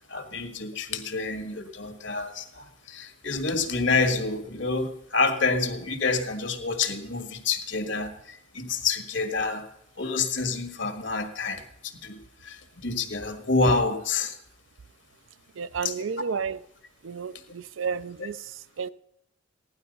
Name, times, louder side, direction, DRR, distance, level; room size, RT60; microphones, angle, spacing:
voice 1, 0.1-9.7 10.0-14.4 15.8-16.0, left 4 dB, 70° left, 1.7 m, -28 dB
voice 2, 15.5-16.6 17.0-18.9, right 6 dB, 80° right, 0.5 m, -32 dB
16.5 x 11.5 x 5.4 m
head